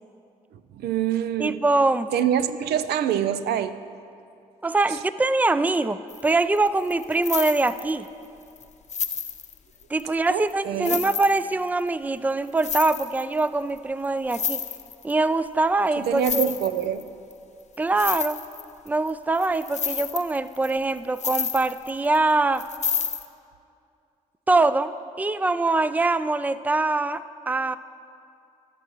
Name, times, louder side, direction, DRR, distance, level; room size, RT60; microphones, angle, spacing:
voice 1, 0.5-1.6 2.1-3.8 10.3-11.0 16.0-17.1, right 9 dB, 70° right, 12 dB, 0.4 m, -26 dB
voice 2, 1.4-2.1 4.6-8.1 9.9-14.6 15.0-16.5 17.8-18.4 18.9-22.6 24.5-27.8, right 2 dB, 10° right, 14 dB, 0.4 m, -23 dB
sound 1, 6.1-6.3 6.6-8.1 8.6-8.7 8.9-10.0 10.5-10.6 10.8-11.9 12.5-13.4 13.8-13.9 14.0-15.1 16.0-17.0 17.3-17.4 17.7-19.1 19.4-22.2 22.5-23.2, left 6 dB, 40° left, 0.7 m, -30 dB
19.5 x 8.0 x 3.1 m, 2.5 s
hypercardioid pair, 45°, 17 cm